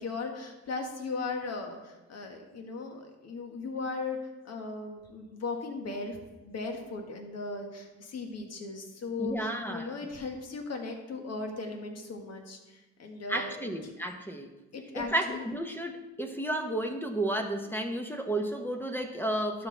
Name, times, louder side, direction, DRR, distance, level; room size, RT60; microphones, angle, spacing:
voice 1, 0.0-4.2 4.4-6.2 6.4-13.7 14.7-15.5, left 3 dB, 55° left, 3 dB, 1.7 m, -37 dB
voice 2, 9.2-10.1 13.3-14.5 14.9-19.7, right 1 dB, 5° left, 4 dB, 0.9 m, -32 dB
12.0 x 6.1 x 3.3 m, 1.2 s
cardioid pair, 90°, 30 cm